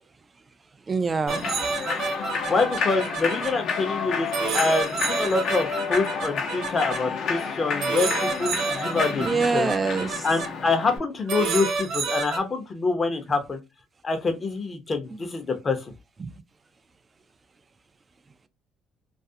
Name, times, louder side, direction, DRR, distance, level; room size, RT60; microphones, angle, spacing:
voice 1, 0.9-1.5 9.2-10.3 15.1-15.2 16.2-16.3, right 4 dB, 25° right, 0.3 m, -25 dB
Human voice / Clapping / Cheering, 1.3-11.0, left 5 dB, 65° left, 0.7 m, -30 dB
sound 1, 1.3-3.5 4.3-7.0 7.8-10.5 11.3-12.4, right 4 dB, 75° right, 0.7 m, -29 dB
voice 2, 2.5-9.7 10.2-13.6 14.0-15.8, left 3 dB, 30° left, 0.7 m, -26 dB
2.4 x 2.0 x 2.6 m
cardioid pair, 110°, 0 cm